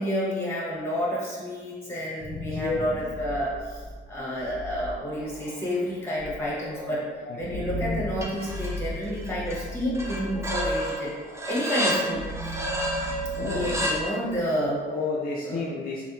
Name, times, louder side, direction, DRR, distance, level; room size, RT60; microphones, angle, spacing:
voice 1, 0.0-3.8 4.1-7.0 7.4-11.1 11.4-12.3 13.4-14.8 15.4-15.6, equal, 10° left, -6 dB, 1.3 m, -30 dB
sound 1, 2.0-14.8, left 1 dB, 80° right, 0.8 m, -37 dB
voice 2, 7.2-7.7 13.4-13.9 14.9-16.0, left 4 dB, 50° left, -3 dB, 0.4 m, -31 dB
sound 2, 8.2-8.8 9.1-9.6 9.9-14.0, equal, 15° right, 0.5 m, -30 dB
3.4 x 2.2 x 2.6 m, 1.5 s
cardioid pair, 80°, 20 cm